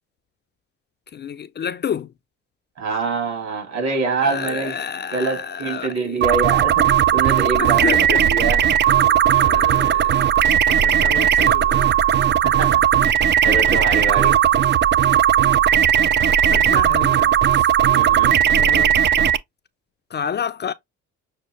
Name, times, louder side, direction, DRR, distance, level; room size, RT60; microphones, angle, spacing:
voice 1, 1.1-2.1 4.2-6.2 7.6-8.3 9.0-11.9 16.5-18.2 18.5-19.0 20.1-20.7, left 8 dB, 35° left, 0.4 m, -30 dB
voice 2, 2.8-4.8 5.1-7.9 8.2-8.6 9.3-9.5 12.4-12.8 13.4-14.4 17.9-18.4, right 4 dB, 60° right, 2.8 m, -25 dB
sound 1, 6.2-19.4, right 10 dB, 40° right, 0.4 m, -17 dB
6.4 x 2.3 x 3.0 m
cardioid pair, 90°, 30 cm